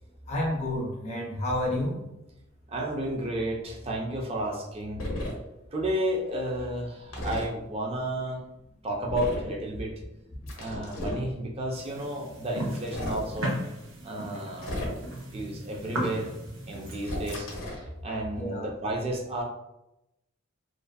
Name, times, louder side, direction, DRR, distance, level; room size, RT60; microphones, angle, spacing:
voice 1, 0.3-2.0 18.4-18.7, left 1 dB, 35° left, -1 dB, 0.5 m, -29 dB
voice 2, 2.7-5.0 5.7-8.4 8.8-9.9 10.6-13.6 14.0-14.8 15.3-16.3 16.7-17.5 18.0-19.4, right 1 dB, 30° right, 0 dB, 0.4 m, -32 dB
sound 1, 5.0-5.3 7.1-7.5 9.1-9.5 10.5-11.2 12.8-13.2 14.6-15.2 17.0-17.9, left 1 dB, 70° left, 0.6 m, -34 dB
sound 2, 11.7-17.3, right 1 dB, 75° right, 0.6 m, -36 dB
2.5 x 2.4 x 2.2 m, 0.89 s
head